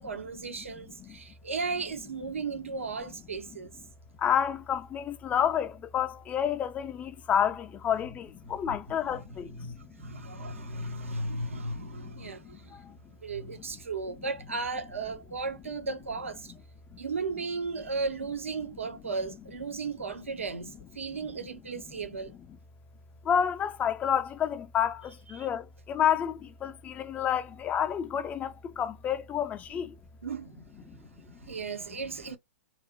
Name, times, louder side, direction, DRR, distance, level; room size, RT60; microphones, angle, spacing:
voice 1, 0.0-3.7 8.4-8.7 9.1-12.8 13.2-16.5 17.0-22.3 25.3-25.5 30.2-32.4, right 4 dB, 85° right, 0.7 m, -36 dB
voice 2, 4.2-11.5 11.8-12.3 12.7-13.0 16.9-17.0 23.2-29.9 30.9-31.0, left 9 dB, 20° left, 0.4 m, -30 dB
3.0 x 2.1 x 3.8 m
hypercardioid pair, 115°, 7 cm